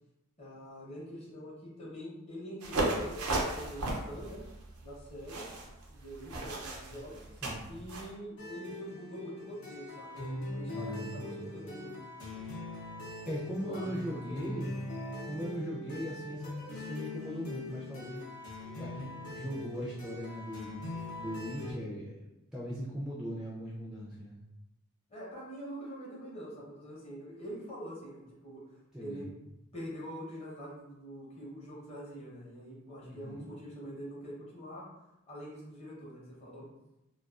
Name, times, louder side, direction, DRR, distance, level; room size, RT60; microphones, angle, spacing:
voice 1, 0.4-4.4 4.8-5.5 5.9-7.2 7.7-12.0 13.5-14.3 25.1-29.3 29.7-34.9 35.3-36.7, equal, 30° left, -5 dB, 0.7 m, -45 dB
sound 1, 2.6-8.1, right 2 dB, 90° right, 0.5 m, -35 dB
sound 2, 8.4-21.7, left 2 dB, 75° left, 0.7 m, -42 dB
voice 2, 10.7-11.4 13.2-14.8 15.2-18.2 18.8-20.8 21.2-24.4 28.9-29.3 33.0-33.5, equal, 5° right, -7 dB, 0.3 m, -39 dB
2.3 x 2.2 x 2.3 m, 0.93 s
head